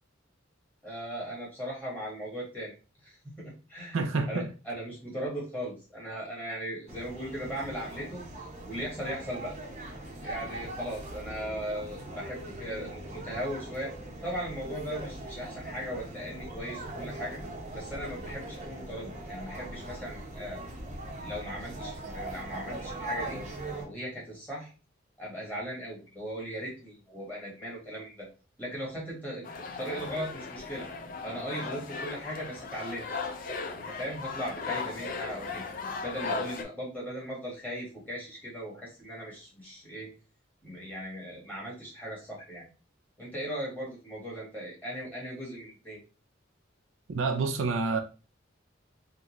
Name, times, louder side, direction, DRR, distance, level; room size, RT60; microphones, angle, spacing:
voice 1, 0.8-2.7 3.0-4.0 4.3-8.2 8.7-9.5 10.2-13.9 14.2-17.4 17.7-20.6 21.2-23.4 23.8-24.7 25.2-28.3 28.6-30.9 31.2-33.1 33.7-35.7 36.0-40.1 40.6-42.6 43.2-46.0, equal, 10° left, 1.5 m, -38 dB
voice 2, 3.9-4.5 47.1-48.0, right 4 dB, 80° right, 0.5 m, -28 dB
sound 1, 6.9-23.9, right 1 dB, 35° right, 0.7 m, -40 dB
sound 2, 29.4-36.6, left 4 dB, 45° left, 0.5 m, -37 dB
3.6 x 2.2 x 3.0 m
head